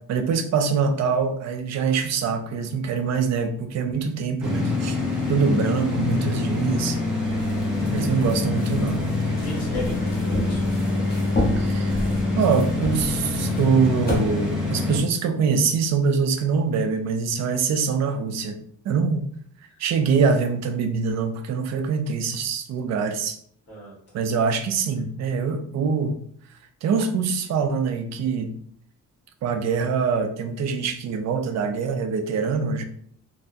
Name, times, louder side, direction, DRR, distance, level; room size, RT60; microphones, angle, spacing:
voice 1, 0.1-5.0 5.3-7.0 7.9-9.0 11.6-12.0 12.4-18.6 18.8-19.3 19.8-23.4 24.1-26.2 26.8-28.5 29.4-32.8, right 5 dB, 55° right, 7 dB, 0.4 m, -24 dB
sound 1, 4.4-15.0, left 2 dB, ahead, 0.7 m, -25 dB
sound 2, 7.3-14.2, left 1 dB, 30° left, 0.9 m, -32 dB
voice 2, 7.7-8.4 9.4-11.0 19.7-19.8 23.7-23.9, left 1 dB, 45° left, -5 dB, 1.3 m, -37 dB
3.4 x 2.0 x 2.5 m, 0.63 s
cardioid pair, 145°, 33 cm